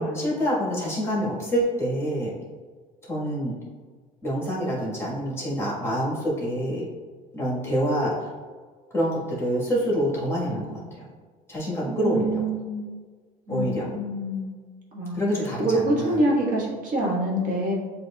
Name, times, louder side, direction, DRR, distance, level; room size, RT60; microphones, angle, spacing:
voice 1, 0.0-2.3 3.0-3.6 4.2-6.8 7.3-8.1 8.9-11.0 11.5-12.4 13.5-13.9 15.1-16.2, equal, 15° left, -5 dB, 1.4 m, -26 dB
voice 2, 11.9-12.8 13.5-13.6 13.9-14.5 14.9-17.7, right 1 dB, 55° right, -4 dB, 1.4 m, -26 dB
7.6 x 2.7 x 2.3 m, 1.5 s
cardioid pair, 130°, 16 cm